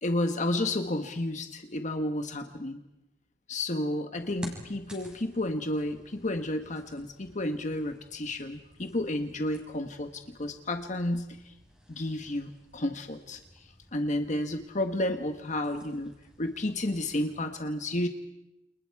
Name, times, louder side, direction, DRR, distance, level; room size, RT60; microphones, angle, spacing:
voice 1, 0.0-2.8 3.5-11.5 11.9-16.1 16.4-18.1, left 1 dB, 40° left, 6 dB, 1.4 m, -31 dB
sound 1, 4.2-17.5, equal, 5° right, 6.6 m, -52 dB
30.0 x 29.0 x 4.8 m, 0.94 s
head